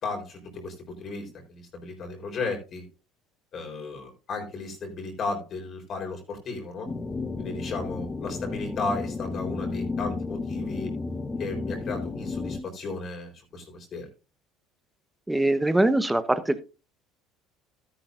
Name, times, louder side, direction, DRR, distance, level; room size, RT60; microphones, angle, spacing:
voice 1, 0.0-2.9 3.5-6.9 7.4-10.9 11.4-14.1, left 3 dB, 45° left, 2 dB, 4.1 m, -35 dB
sound 1, 6.9-12.6, left 3 dB, 20° left, 1.1 m, -32 dB
voice 2, 15.3-16.6, right 1 dB, 10° right, 12 dB, 1.1 m, -22 dB
13.0 x 10.0 x 2.6 m, 0.30 s
supercardioid pair, 80°, 0 cm